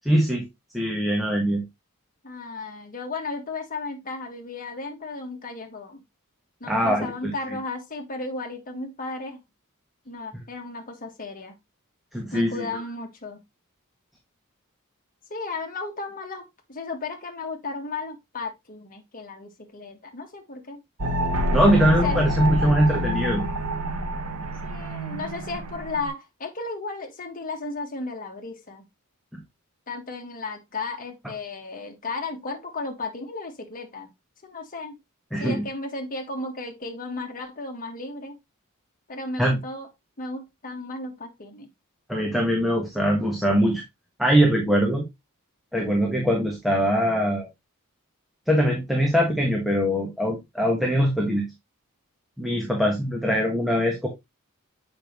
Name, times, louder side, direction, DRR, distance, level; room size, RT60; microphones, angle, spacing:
voice 1, 0.0-0.5 0.7-1.6 6.7-7.6 12.1-12.7 21.5-23.5 29.3-29.4 35.3-35.6 39.4-39.6 42.1-43.8 44.2-45.0 45.7-47.5 48.5-51.5 52.4-54.1, equal, ahead, 1.4 m, -22 dB
voice 2, 2.2-6.0 6.6-9.4 10.0-11.6 12.3-13.4 15.3-20.8 22.0-22.2 24.6-28.9 29.9-34.1 34.4-35.0 35.4-38.4 39.1-39.9 40.2-41.7, left 3 dB, 40° left, 1.6 m, -34 dB
sound 1, 21.0-26.1, equal, 80° right, 1.3 m, -27 dB
7.4 x 5.3 x 3.0 m
head